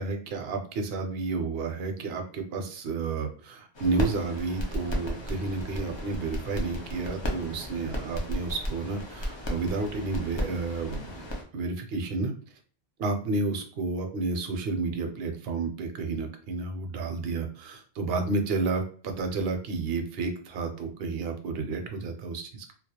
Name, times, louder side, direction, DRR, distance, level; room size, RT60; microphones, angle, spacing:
voice 1, 0.0-11.3 11.5-12.3 13.0-22.7, right 3 dB, 65° right, 5 dB, 0.7 m, -31 dB
sound 1, 3.7-11.4, equal, 45° left, 0.3 m, -34 dB
2.3 x 2.0 x 2.8 m, 0.43 s
omnidirectional pair, 1.2 m